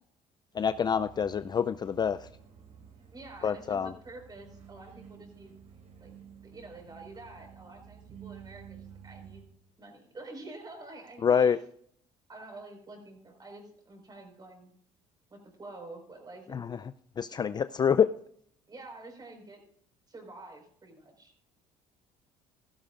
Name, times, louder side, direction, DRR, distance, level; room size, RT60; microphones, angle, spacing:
voice 1, 0.5-2.3 3.4-3.9 11.2-11.6 16.5-16.8 17.2-18.1, left 7 dB, 30° left, 13 dB, 0.4 m, -26 dB
sound 1, 0.5-9.4, right 8 dB, 55° right, 4.5 m, -51 dB
voice 2, 2.8-5.5 6.0-6.1 6.4-9.4 9.8-11.6 12.3-14.7 15.3-16.7 18.7-19.6 20.1-21.3, right 2 dB, 30° right, 4 dB, 4.7 m, -48 dB
16.0 x 13.5 x 2.5 m, 0.63 s
supercardioid pair, 80°, 14 cm